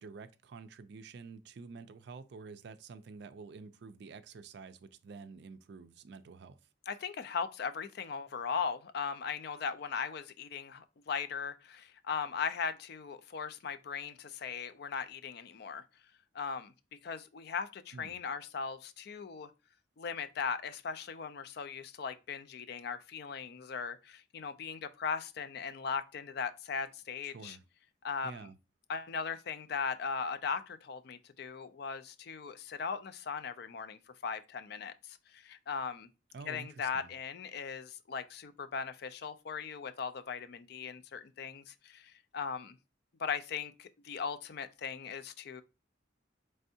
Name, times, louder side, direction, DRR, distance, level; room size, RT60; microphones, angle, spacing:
voice 1, 0.0-6.6 17.9-18.2 27.2-27.6 28.2-28.5 36.3-37.1, right 4 dB, 60° right, 0.4 m, -49 dB
voice 2, 6.9-15.8 16.3-19.5 20.0-27.6 28.0-28.4 28.9-36.1 36.5-42.8 43.2-45.6, left 6 dB, 55° left, 0.4 m, -38 dB
4.4 x 3.3 x 2.7 m
head